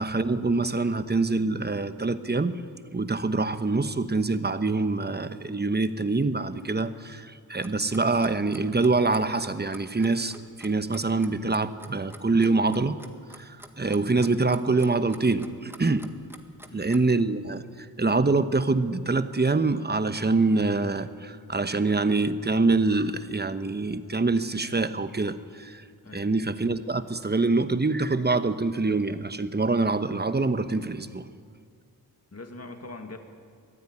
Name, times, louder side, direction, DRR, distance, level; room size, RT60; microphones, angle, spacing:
voice 1, 0.0-2.6 2.9-13.0 13.4-16.1 16.7-25.8 26.1-31.3, right 3 dB, 25° right, 11 dB, 1.2 m, -25 dB
Clock, 7.6-17.2, right 1 dB, 5° right, 1.7 m, -47 dB
voice 2, 32.3-33.2, left 2 dB, 40° left, 5 dB, 2.3 m, -42 dB
23.0 x 15.0 x 9.8 m, 2.1 s
wide cardioid pair, 75°, 38 cm